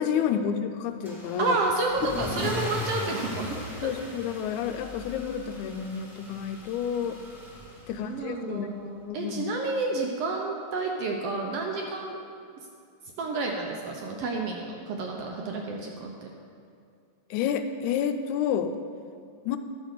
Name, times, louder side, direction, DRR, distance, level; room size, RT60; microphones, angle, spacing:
voice 1, 0.0-1.6 2.0-2.1 3.8-7.2 7.9-8.7 9.1-9.4 17.3-18.7 19.5-19.6, left 8 dB, 80° left, 9 dB, 1.9 m, -29 dB
Car / Engine starting / Accelerating revving vroom, 1.0-8.2, left 2 dB, ahead, 0.8 m, -38 dB
voice 2, 1.4-3.9 7.9-12.2 13.2-16.3, right 3 dB, 70° right, 1 dB, 1.5 m, -30 dB
11.0 x 5.2 x 6.5 m, 2.4 s
omnidirectional pair, 3.4 m